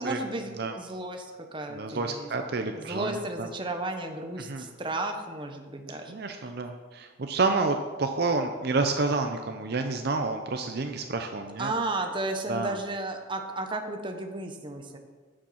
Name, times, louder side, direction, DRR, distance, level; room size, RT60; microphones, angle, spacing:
voice 1, 0.0-2.3 2.7-6.5 11.6-15.0, right 2 dB, 25° right, 4 dB, 0.9 m, -34 dB
voice 2, 1.7-3.5 4.5-4.7 6.1-11.7 12.5-12.8, right 3 dB, 50° right, 5 dB, 0.6 m, -29 dB
8.8 x 7.1 x 5.7 m, 1.4 s
head